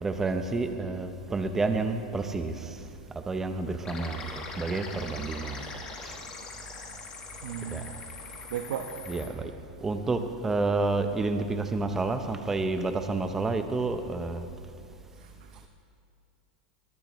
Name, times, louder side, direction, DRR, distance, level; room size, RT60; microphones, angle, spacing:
voice 1, 0.0-2.8 3.3-5.7 6.0-6.2 7.7-7.8 9.1-9.5 9.8-14.5, right 3 dB, 10° right, 7 dB, 0.6 m, -30 dB
sound 1, 3.8-9.3, left 4 dB, 15° left, 1.3 m, -42 dB
voice 2, 7.4-9.1 15.2-15.7, right 9 dB, 85° right, 4 dB, 1.0 m, -38 dB
21.0 x 18.5 x 3.0 m, 2.4 s
supercardioid pair, 175°, 5 cm